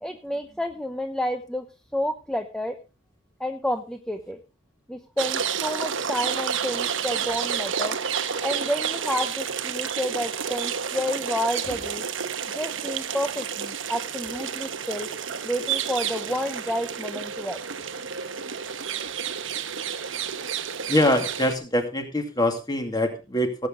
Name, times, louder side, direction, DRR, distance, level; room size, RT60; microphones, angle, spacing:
voice 1, 0.0-1.7 1.9-2.7 3.4-4.4 4.9-7.9 8.4-12.0 12.5-15.1 15.4-17.6, equal, 5° left, 6 dB, 0.8 m, -30 dB
sound 1, 5.2-21.6, right 7 dB, 75° right, 1.0 m, -30 dB
voice 2, 20.9-23.7, left 1 dB, 20° left, 5 dB, 2.4 m, -24 dB
17.5 x 8.4 x 3.8 m, 0.32 s
head